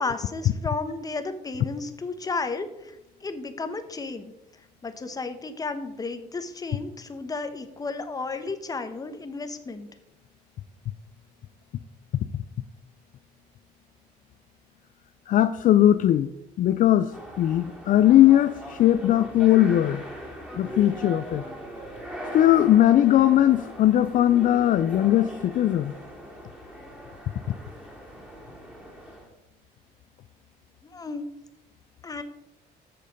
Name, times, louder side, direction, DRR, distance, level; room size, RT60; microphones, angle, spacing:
voice 1, 0.0-4.3 4.8-9.9 30.8-31.3 32.0-32.2, left 3 dB, 20° left, 9 dB, 1.0 m, -33 dB
voice 2, 15.3-16.3 16.6-20.0 20.6-21.4 22.3-25.9 27.5-27.6, left 12 dB, 50° left, 11 dB, 0.4 m, -19 dB
sound 1, 17.1-29.3, equal, 10° right, 2.6 m, -40 dB
7.7 x 6.5 x 5.3 m, 0.90 s
cardioid pair, 110°, 17 cm